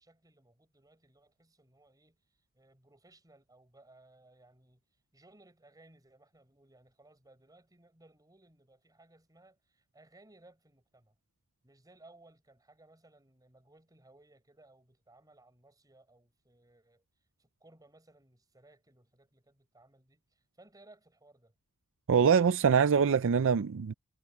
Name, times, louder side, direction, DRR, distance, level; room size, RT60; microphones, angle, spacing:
voice 1, 0.0-2.2 2.5-4.8 5.1-11.2 11.6-17.0 17.4-21.5, right 2 dB, 15° right, 5.5 m, -61 dB
voice 2, 22.1-23.9, right 6 dB, 60° right, 0.4 m, -24 dB
head